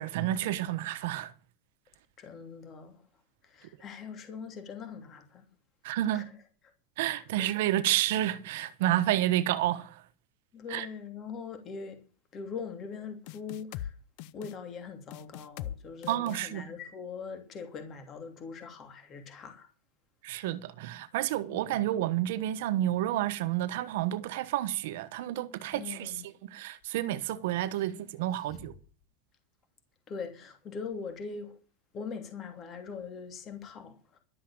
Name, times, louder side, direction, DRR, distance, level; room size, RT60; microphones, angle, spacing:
voice 1, 0.0-1.3 5.8-6.2 7.0-10.0 10.7-10.9 16.1-16.6 20.2-28.7, right 13 dB, 75° right, 1.1 m, -30 dB
voice 2, 2.2-3.0 3.4-5.4 6.1-6.3 7.4-7.5 10.5-12.0 12.3-13.9 14.3-19.7 21.5-21.8 25.7-26.2 28.5-28.7 30.1-31.6 31.9-34.2, left 5 dB, 35° left, 2.8 m, -42 dB
sound 1, 13.3-13.9 14.2-14.5 15.1-15.8 16.0-16.4, left 12 dB, 60° left, 0.7 m, -40 dB
12.0 x 7.7 x 8.8 m
supercardioid pair, 135°, 0 cm